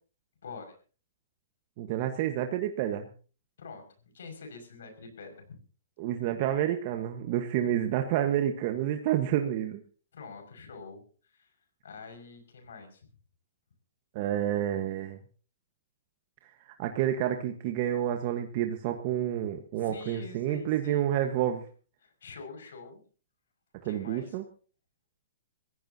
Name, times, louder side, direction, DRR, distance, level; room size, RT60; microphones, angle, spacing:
voice 1, 0.4-0.7 3.6-5.6 10.1-11.6 11.8-13.1 19.8-21.3 22.0-23.0 23.8-24.4, left 4 dB, 85° left, 6 dB, 5.9 m, -46 dB
voice 2, 1.8-3.1 6.0-9.8 14.1-15.2 16.4-21.6 23.8-24.4, right 11 dB, 45° right, 5 dB, 1.3 m, -29 dB
24.0 x 16.0 x 2.8 m, 0.39 s
hypercardioid pair, 145°, 0 cm